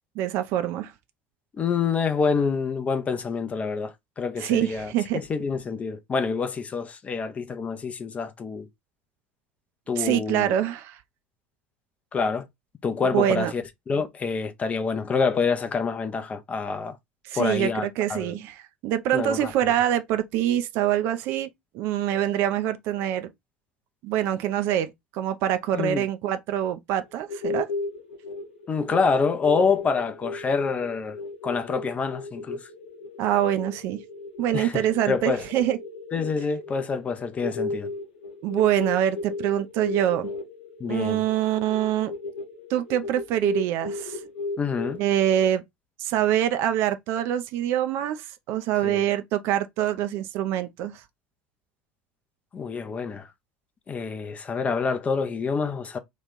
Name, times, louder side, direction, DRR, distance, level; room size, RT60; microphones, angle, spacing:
voice 1, 0.2-0.9 4.4-5.2 10.0-11.0 13.1-13.5 17.2-21.5 21.7-23.3 24.0-27.7 33.2-34.0 34.4-35.8 38.4-40.3 40.9-42.1 42.7-44.2 45.0-45.6 46.0-51.0, right 11 dB, 50° right, 0.4 m, -25 dB
voice 2, 1.5-8.7 9.9-10.5 12.1-12.5 12.8-17.0 17.4-18.4 19.1-19.5 25.7-26.0 28.7-31.2 31.4-32.7 34.5-34.7 35.1-35.4 36.1-37.9 40.8-41.2 44.6-45.0 48.8-49.0 52.5-53.3 53.9-56.0, left 5 dB, 25° left, 0.7 m, -27 dB
sound 1, 27.0-45.5, left 3 dB, 70° left, 0.9 m, -35 dB
3.1 x 2.4 x 3.6 m
figure-of-eight pair, 70°, 5 cm